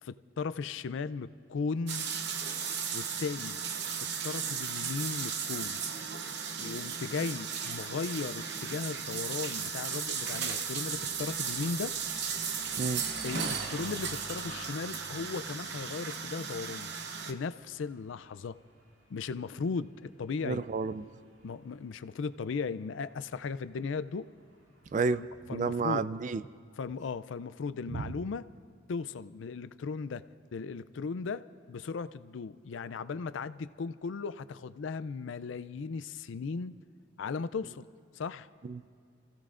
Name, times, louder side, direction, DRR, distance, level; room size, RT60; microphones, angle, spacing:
voice 1, 0.0-2.1 2.9-3.6 4.0-5.8 6.6-11.9 13.2-16.9 17.2-18.6 19.1-20.7 21.4-24.3 25.1-26.1 26.8-28.5 28.9-30.2 30.5-31.4 31.7-36.7 37.2-37.9 38.1-38.5, left 5 dB, 70° left, 15 dB, 0.4 m, -37 dB
sound 1, 1.9-17.3, right 6 dB, 55° right, 0.8 m, -36 dB
Engine, 7.4-25.2, right 1 dB, 75° right, 2.1 m, -52 dB
voice 2, 20.4-21.1 24.9-25.2 25.5-26.4 27.9-28.1 38.6-39.0, right 4 dB, 40° right, 14 dB, 0.3 m, -31 dB
29.5 x 15.5 x 2.5 m, 2.2 s
head